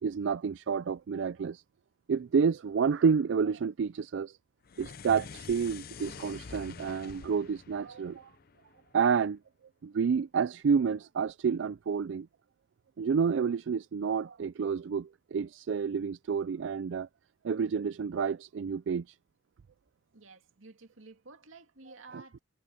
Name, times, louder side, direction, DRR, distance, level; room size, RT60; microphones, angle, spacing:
voice 1, 0.0-1.6 2.1-4.4 4.8-8.3 8.9-9.4 9.8-12.3 13.0-17.1 17.4-19.2, right 6 dB, 65° right, 0.4 m, -29 dB
sound 1, 4.6-9.1, left 5 dB, 50° left, 0.5 m, -46 dB
voice 2, 20.1-22.4, right 3 dB, 90° right, 2.3 m, -52 dB
head